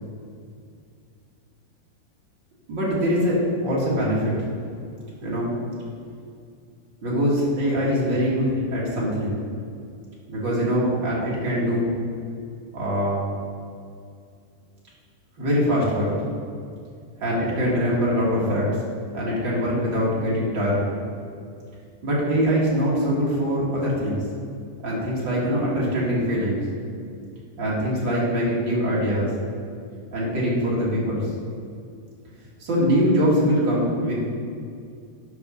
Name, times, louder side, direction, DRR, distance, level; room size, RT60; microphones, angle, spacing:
voice 1, 2.7-4.3 5.2-5.5 7.0-9.4 10.3-11.9 12.7-13.2 15.4-16.1 17.2-18.6 19.1-20.9 22.0-24.2 24.8-26.6 27.6-29.3 30.1-31.3 32.6-34.1, equal, 50° right, -6 dB, 1.4 m, -23 dB
9.4 x 5.4 x 6.3 m, 2.3 s
omnidirectional pair, 5.2 m